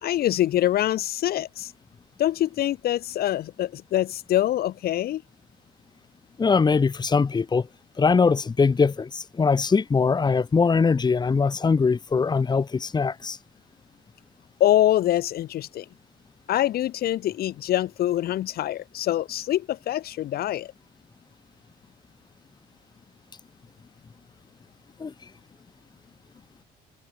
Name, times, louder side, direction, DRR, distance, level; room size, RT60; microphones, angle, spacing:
voice 1, 0.0-1.7 2.2-5.2 14.6-15.9 16.5-20.7, left 13 dB, 65° left, 2.3 m, -24 dB
voice 2, 6.4-7.7 8.0-13.4 25.0-25.1, left 5 dB, 25° left, 1.9 m, -22 dB
cardioid pair, 110°, 17 cm